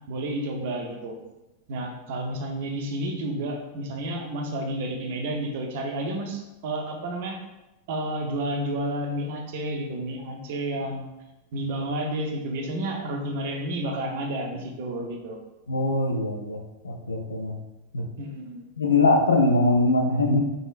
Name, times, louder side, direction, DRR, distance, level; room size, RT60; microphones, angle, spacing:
voice 1, 0.1-1.2 1.7-7.4 7.9-11.1 11.5-15.4 18.2-18.6, right 1 dB, 50° right, 3 dB, 0.6 m, -31 dB
voice 2, 15.7-17.6 17.9-18.1 18.8-20.4, left 2 dB, 75° left, 4 dB, 0.4 m, -22 dB
3.7 x 3.6 x 2.5 m, 0.98 s
figure-of-eight pair, 90°, 0 cm